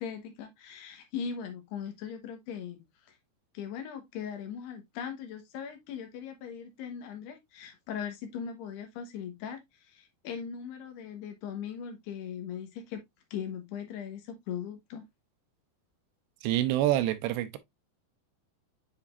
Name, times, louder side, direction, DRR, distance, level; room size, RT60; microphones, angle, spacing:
voice 1, 0.0-3.2 3.5-13.0 13.3-15.1, left 7 dB, 75° left, 3.2 m, -39 dB
voice 2, 16.4-17.6, right 13 dB, 85° right, 2.8 m, -27 dB
9.8 x 4.2 x 2.5 m
omnidirectional pair, 4.9 m